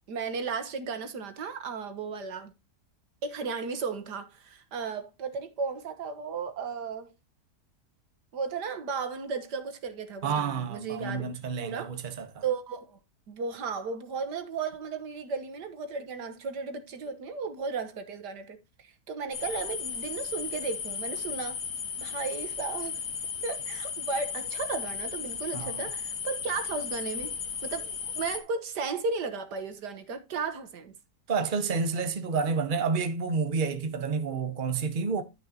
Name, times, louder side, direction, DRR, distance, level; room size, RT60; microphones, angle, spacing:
voice 1, 0.1-2.5 3.2-7.1 8.3-11.3 11.6-11.9 12.4-13.0 13.3-21.6 22.0-23.0 23.4-27.4 27.6-30.9, right 5 dB, 80° right, 1.9 m, -35 dB
voice 2, 10.2-12.4 25.5-25.8 31.3-35.2, right 5 dB, 35° right, 1.2 m, -29 dB
sound 1, 19.3-28.4, left 6 dB, 70° left, 1.9 m, -35 dB
12.0 x 6.2 x 2.9 m
omnidirectional pair, 1.8 m